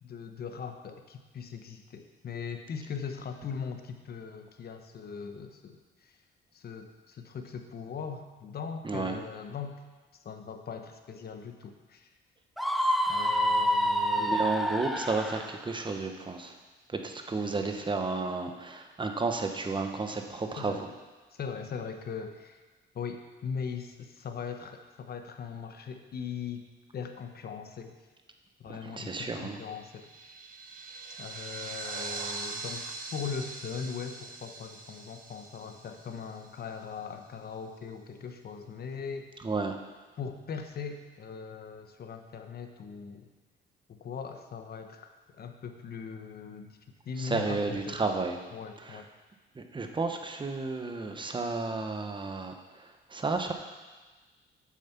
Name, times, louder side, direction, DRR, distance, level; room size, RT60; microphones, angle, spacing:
voice 1, 0.0-6.2 6.5-9.8 10.2-12.1 13.1-14.4 20.6-20.8 21.3-22.6 22.9-26.7 26.9-28.0 28.6-30.4 31.2-32.9 33.1-39.3 40.2-43.3 43.9-46.8 47.0-48.0 48.5-49.1, left 6 dB, 50° left, 6 dB, 1.0 m, -40 dB
voice 2, 8.8-9.2 14.2-16.6 16.9-20.9 28.7-29.6 39.4-39.7 47.2-48.4 48.8-49.0 49.5-53.5, right 3 dB, 25° right, 5 dB, 1.1 m, -32 dB
Screaming, 12.6-15.5, equal, ahead, 0.6 m, -27 dB
sound 1, 29.7-36.6, right 3 dB, 45° right, 1.4 m, -42 dB
7.5 x 7.1 x 5.8 m, 1.3 s
cardioid pair, 90°, 20 cm